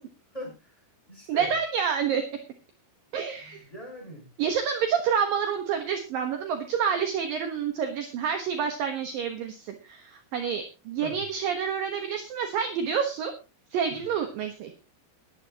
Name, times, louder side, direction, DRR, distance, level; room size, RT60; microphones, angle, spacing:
voice 1, 0.3-0.7 1.1-1.5 3.4-4.3 11.0-11.2 13.9-14.0, equal, 5° left, 0 dB, 5.9 m, -41 dB
voice 2, 1.3-2.2 3.1-3.6 4.4-13.3 13.7-14.7, right 7 dB, 70° right, 5 dB, 2.2 m, -28 dB
20.5 x 11.0 x 2.9 m, 0.28 s
omnidirectional pair, 5.9 m